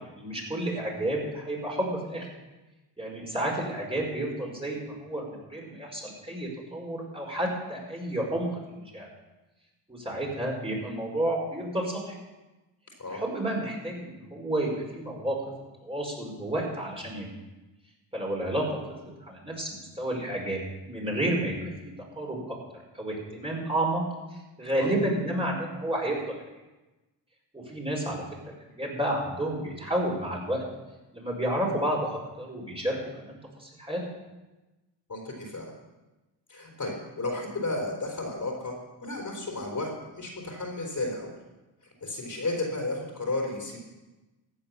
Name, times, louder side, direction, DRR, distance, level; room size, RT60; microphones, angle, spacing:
voice 1, 0.1-2.3 3.0-9.1 9.9-12.1 13.1-15.4 15.8-17.3 18.1-18.6 19.0-21.7 22.2-22.5 22.9-24.0 24.6-26.2 27.5-30.6 31.1-34.0, right 1 dB, 10° right, -2 dB, 5.2 m, -31 dB
voice 2, 35.1-35.7 36.5-38.7 39.0-41.3 42.0-43.8, left 2 dB, 40° left, 0 dB, 4.0 m, -33 dB
14.5 x 8.5 x 7.0 m, 1.1 s
cardioid pair, 80°, 45 cm